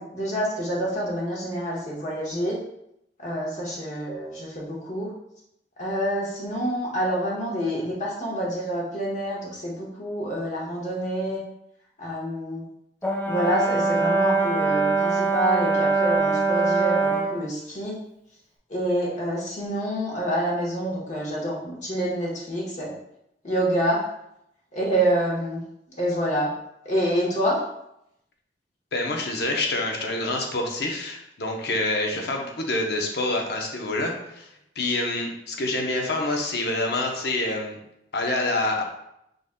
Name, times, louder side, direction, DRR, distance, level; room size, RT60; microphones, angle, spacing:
voice 1, 0.0-2.6 3.2-5.1 5.8-11.4 12.0-12.6 13.3-18.0 18.7-22.9 23.4-24.0 24.7-25.6 26.0-26.5 26.8-27.6, right 1 dB, 45° left, -4 dB, 1.2 m, -27 dB
Brass instrument, 13.0-17.4, right 3 dB, 10° left, 0.4 m, -23 dB
voice 2, 28.9-34.5 34.8-37.8 38.1-38.8, left 2 dB, 65° left, 1 dB, 0.8 m, -27 dB
5.0 x 3.9 x 2.2 m, 0.79 s
head